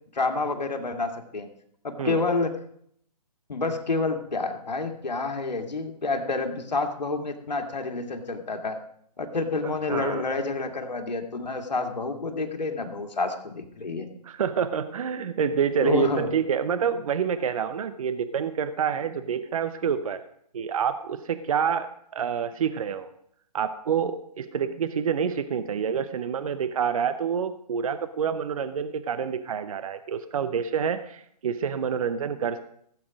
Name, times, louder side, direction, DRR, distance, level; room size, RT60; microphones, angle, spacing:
voice 1, 0.1-1.5 1.8-2.6 3.5-8.8 9.2-14.1 15.8-16.3, left 3 dB, 85° left, 4 dB, 2.2 m, -28 dB
voice 2, 9.6-10.2 14.2-20.2 20.5-23.1 23.5-32.6, right 7 dB, 55° right, 11 dB, 0.8 m, -27 dB
16.0 x 8.5 x 5.1 m, 0.69 s
hypercardioid pair, 150°, 21 cm